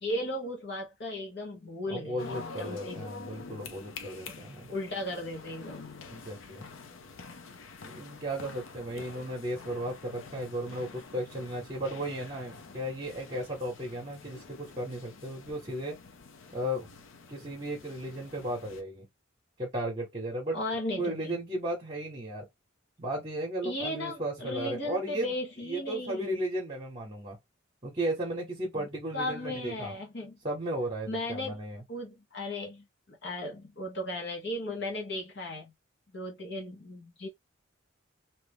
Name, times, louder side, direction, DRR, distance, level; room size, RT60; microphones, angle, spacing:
voice 1, 0.0-3.1 4.3-4.4 4.7-5.9 8.9-9.2 20.5-21.4 23.6-26.4 28.8-28.9 29.1-30.4 31.1-31.6 31.9-35.7 36.1-37.3, left 1 dB, 55° left, 0.9 m, -36 dB
voice 2, 1.9-4.7 6.1-6.6 7.8-16.0 16.5-16.9 17.3-19.1 19.6-20.6 21.0-22.5 23.0-25.3 25.6-27.4 27.8-29.9 30.4-31.8, right 1 dB, 30° right, 0.9 m, -35 dB
sound 1, 2.2-18.8, left 4 dB, 80° left, 0.6 m, -47 dB
2.8 x 2.3 x 3.4 m
head